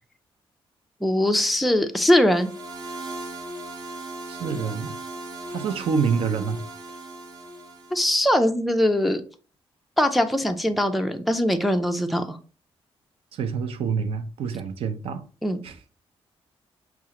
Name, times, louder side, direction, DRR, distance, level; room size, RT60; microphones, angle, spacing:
voice 1, 1.0-2.5 7.9-9.2 10.0-12.4 15.4-15.6, left 1 dB, ahead, 0.3 m, -21 dB
sound 1, 2.3-8.1, right 2 dB, 40° right, 0.8 m, -38 dB
voice 2, 4.3-5.0 5.5-6.6 13.3-15.2 15.6-15.8, right 6 dB, 75° right, 0.6 m, -27 dB
6.0 x 2.4 x 2.9 m
wide cardioid pair, 160°, 10 cm